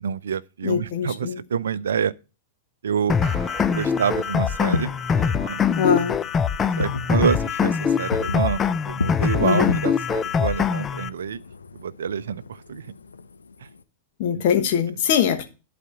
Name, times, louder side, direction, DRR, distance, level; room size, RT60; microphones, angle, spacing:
voice 1, 0.0-2.1 2.8-3.2 3.7-5.6 6.8-11.4 11.7-12.9 13.6-13.7 14.3-14.4, right 7 dB, 70° right, 0.5 m, -27 dB
voice 2, 0.6-1.4 5.8-6.2 9.4-9.7 14.2-15.4, left 8 dB, 50° left, 1.2 m, -22 dB
sound 1, 3.1-11.1, left 6 dB, 20° left, 0.5 m, -23 dB
sound 2, 3.2-5.7, right 3 dB, 5° right, 3.4 m, -42 dB
Fireworks, 4.6-13.8, left 4 dB, 80° left, 0.6 m, -34 dB
11.0 x 4.3 x 6.6 m
figure-of-eight pair, 100°, 0 cm